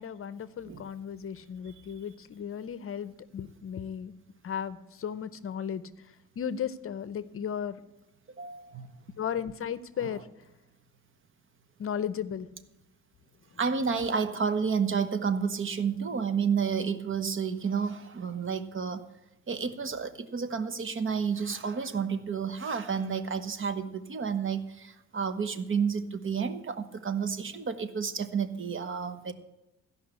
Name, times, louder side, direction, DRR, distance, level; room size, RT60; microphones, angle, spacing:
voice 1, 0.0-4.1 4.4-5.8 6.4-7.8 9.2-10.2 11.8-12.5, left 8 dB, 45° left, 16 dB, 0.7 m, -35 dB
voice 2, 8.4-8.9 10.0-10.2 13.6-19.0 19.5-29.3, right 6 dB, 45° right, 11 dB, 1.1 m, -30 dB
15.0 x 5.6 x 8.2 m, 0.95 s
cardioid pair, 90°, 30 cm